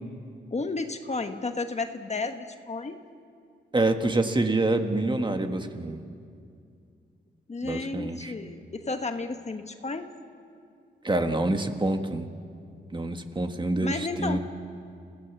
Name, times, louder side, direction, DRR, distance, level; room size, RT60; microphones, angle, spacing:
voice 1, 0.5-3.0 7.5-10.1 13.8-14.4, left 3 dB, 35° left, 7 dB, 1.4 m, -32 dB
voice 2, 3.7-6.0 7.6-8.3 11.0-12.3 12.9-14.4, right 2 dB, 25° right, 6 dB, 1.7 m, -26 dB
29.5 x 17.0 x 7.3 m, 2.3 s
cardioid pair, 80°, 19 cm